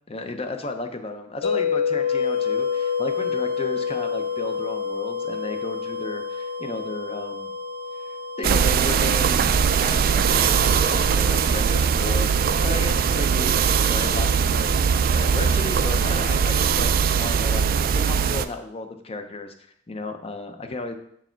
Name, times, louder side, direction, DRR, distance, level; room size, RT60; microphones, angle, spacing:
voice 1, 0.1-7.5 8.1-9.4 9.8-14.7 15.1-19.5 19.9-20.9, left 3 dB, 30° left, 7 dB, 0.7 m, -34 dB
sound 1, 1.4-11.5, left 7 dB, 80° left, 0.6 m, -29 dB
sound 2, 1.9-17.2, right 5 dB, 55° left, 1.3 m, -40 dB
sound 3, 8.4-18.5, right 6 dB, 50° right, 0.3 m, -21 dB
6.9 x 4.7 x 4.4 m, 0.70 s
head